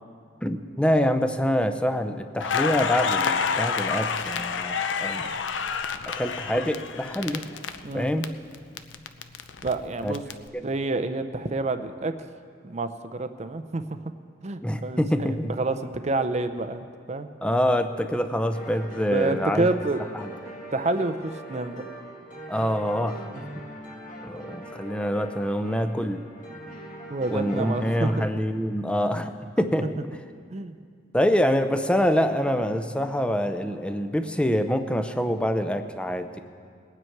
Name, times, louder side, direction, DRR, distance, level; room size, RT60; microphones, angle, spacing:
voice 1, 0.4-5.3 6.1-7.4 7.9-8.3 10.0-10.1 10.5-10.7 14.6-15.5 17.4-19.7 20.1-20.3 22.5-23.3 24.2-26.2 27.3-30.0 31.1-36.4, equal, 5° left, 8 dB, 0.5 m, -25 dB
Crackle, 2.4-8.3 8.5-10.3, left 6 dB, 80° left, 0.6 m, -28 dB
voice 2, 9.6-10.2 10.6-12.1 12.6-14.0 14.4-17.3 19.1-20.0 20.7-21.8 27.1-28.3 30.5-30.8, right 2 dB, 40° right, 10 dB, 0.6 m, -28 dB
sound 1, 18.5-28.3, equal, 45° left, 1.9 m, -41 dB
21.0 x 9.1 x 4.6 m, 2.1 s
head